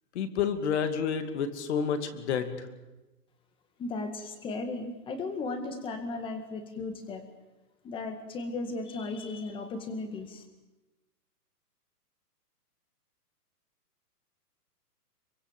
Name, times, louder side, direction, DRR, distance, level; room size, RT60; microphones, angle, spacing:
voice 1, 0.1-2.5, left 7 dB, 45° left, 9 dB, 2.6 m, -29 dB
voice 2, 3.8-7.2 7.8-10.5, left 3 dB, 10° left, 7 dB, 1.9 m, -36 dB
26.0 x 24.0 x 7.4 m, 1.1 s
hypercardioid pair, 165°, 47 cm